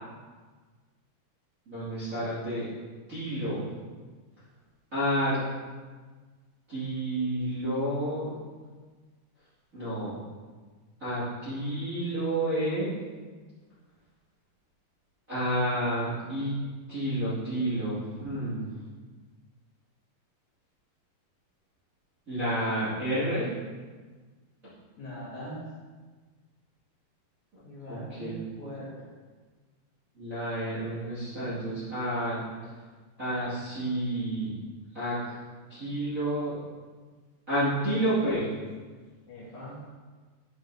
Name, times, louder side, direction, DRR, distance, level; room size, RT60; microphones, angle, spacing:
voice 1, 1.7-2.7 3.1-3.7 4.9-5.4 6.7-8.3 9.7-10.2 11.0-12.9 15.3-16.5 16.9-18.7 22.3-23.5 27.9-28.5 30.2-32.4 33.2-34.5 34.9-35.3 35.7-36.5 37.5-38.5, right 1 dB, 30° right, -12 dB, 1.7 m, -30 dB
voice 2, 25.0-25.6 27.6-29.1 39.3-39.8, equal, 55° left, -8 dB, 2.7 m, -41 dB
10.0 x 5.5 x 2.6 m, 1.4 s
omnidirectional pair, 4.5 m